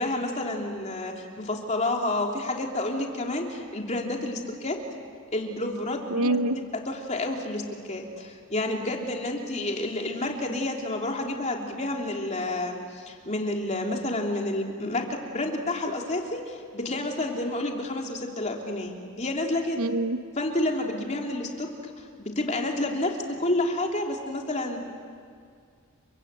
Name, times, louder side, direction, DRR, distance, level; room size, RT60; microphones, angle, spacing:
voice 1, 0.0-4.8 5.3-7.6 7.9-19.9 20.4-21.9 22.2-24.8, left 2 dB, 30° left, 1 dB, 3.1 m, -29 dB
voice 2, 6.1-6.6 19.8-20.2, right 2 dB, 80° right, 11 dB, 0.9 m, -25 dB
29.5 x 24.5 x 8.2 m, 2.2 s
head